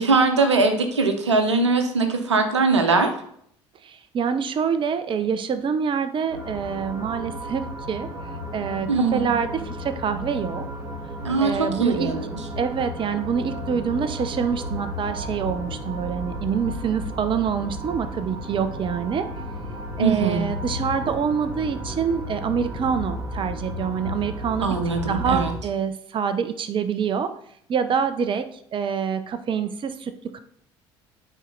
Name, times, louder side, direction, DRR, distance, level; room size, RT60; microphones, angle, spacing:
voice 1, 0.0-3.1 8.9-9.4 11.2-12.3 20.0-20.5 24.6-25.5, right 3 dB, 85° right, 6 dB, 0.8 m, -21 dB
voice 2, 3.8-7.6 7.9-8.1 8.5-10.6 11.4-12.1 12.6-19.3 20.0-24.7 25.1-27.3 27.7-30.4, right 7 dB, 35° right, 10 dB, 0.7 m, -26 dB
sound 1, 6.3-25.6, left 1 dB, 15° right, 2.7 m, -33 dB
9.1 x 4.4 x 3.9 m, 0.67 s
figure-of-eight pair, 60°, 15 cm